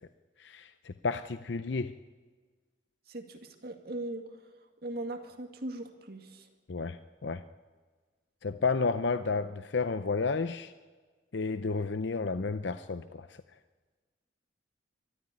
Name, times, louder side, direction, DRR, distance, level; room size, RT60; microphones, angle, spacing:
voice 1, 0.4-1.9 6.7-7.4 8.4-10.7 11.3-13.4, left 4 dB, 65° left, 11 dB, 0.6 m, -32 dB
voice 2, 3.1-4.4 4.8-6.5, right 1 dB, 55° right, 5 dB, 2.1 m, -39 dB
23.0 x 13.5 x 9.7 m, 1.4 s
head